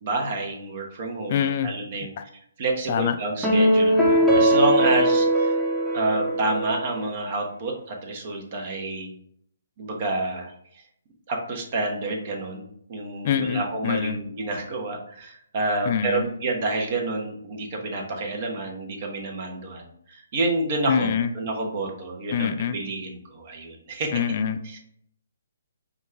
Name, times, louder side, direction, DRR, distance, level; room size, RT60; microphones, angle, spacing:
voice 1, 0.0-2.1 2.6-5.6 5.9-9.1 9.8-10.5 11.3-24.2 24.6-24.8, right 2 dB, 40° right, 1 dB, 1.0 m, -29 dB
voice 2, 1.3-1.7 2.2-2.3 2.9-3.2 13.2-14.2 15.9-16.2 20.9-21.3 22.3-22.8 24.1-24.8, left 8 dB, 40° left, 8 dB, 0.3 m, -25 dB
sound 1, 3.4-6.9, right 1 dB, 5° right, 0.8 m, -20 dB
5.1 x 2.5 x 3.3 m, 0.68 s
hypercardioid pair, 150°, 0 cm